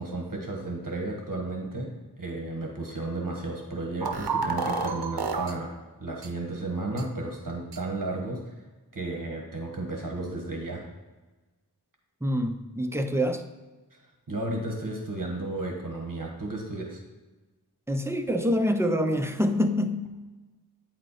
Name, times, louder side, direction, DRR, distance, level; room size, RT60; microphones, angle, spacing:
voice 1, 0.0-8.4 8.9-10.9 14.3-17.0, right 2 dB, 55° right, 0 dB, 1.3 m, -33 dB
sound 1, 4.0-5.5 6.2-6.3 7.0-7.1 7.7-7.8, right 4 dB, 70° right, 0.7 m, -29 dB
voice 2, 12.2-13.4 17.9-20.1, equal, 5° right, 6 dB, 0.6 m, -26 dB
8.9 x 4.3 x 4.1 m, 1.2 s
wide cardioid pair, 45°, 39 cm